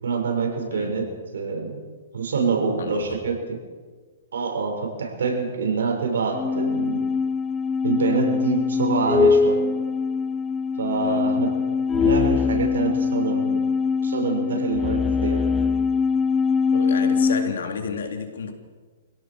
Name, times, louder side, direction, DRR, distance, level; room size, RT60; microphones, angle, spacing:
voice 1, 0.0-1.0 1.3-1.8 2.1-3.6 4.3-7.0 7.8-9.6 10.8-11.5 11.9-13.6 14.0-15.4, right 5 dB, 85° right, 2 dB, 6.3 m, -26 dB
voice 2, 2.8-3.2 11.0-11.3 16.7-18.5, left 5 dB, 80° left, 4 dB, 3.6 m, -31 dB
sound 1, 6.3-17.5, left 5 dB, 15° left, 0.6 m, -22 dB
26.5 x 17.0 x 6.5 m, 1.5 s
hypercardioid pair, 155°, 0 cm